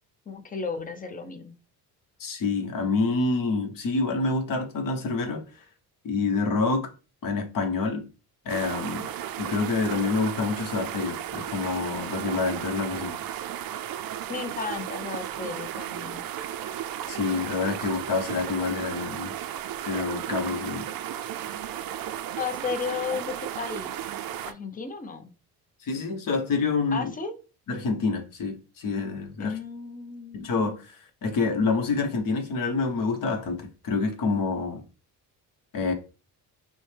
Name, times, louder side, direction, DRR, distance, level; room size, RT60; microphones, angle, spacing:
voice 1, 0.3-1.5 14.3-16.2 22.4-23.9 24.5-25.3 26.9-27.3 29.4-30.5, left 5 dB, 20° left, 0.6 m, -34 dB
voice 2, 2.2-5.5 6.0-6.9 7.2-8.1 8.4-9.1 9.4-13.2 17.1-19.3 19.9-20.9 25.8-27.1 27.7-29.6 30.3-31.0 31.2-34.8 35.7-35.9, left 4 dB, 55° left, 1.0 m, -27 dB
sound 1, 8.5-24.5, right 11 dB, 65° right, 0.5 m, -34 dB
6.1 x 2.2 x 3.3 m
cardioid pair, 140°, 39 cm